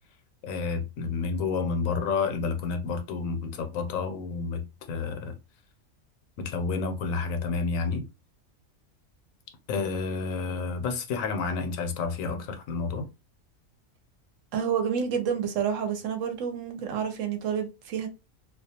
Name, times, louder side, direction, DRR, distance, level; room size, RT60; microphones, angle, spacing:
voice 1, 0.4-4.6 4.9-5.4 6.4-8.0 9.7-13.1, left 4 dB, 80° left, 1.0 m, -30 dB
voice 2, 14.5-18.1, right 7 dB, 75° right, 1.0 m, -29 dB
2.4 x 2.2 x 2.7 m
omnidirectional pair, 1.4 m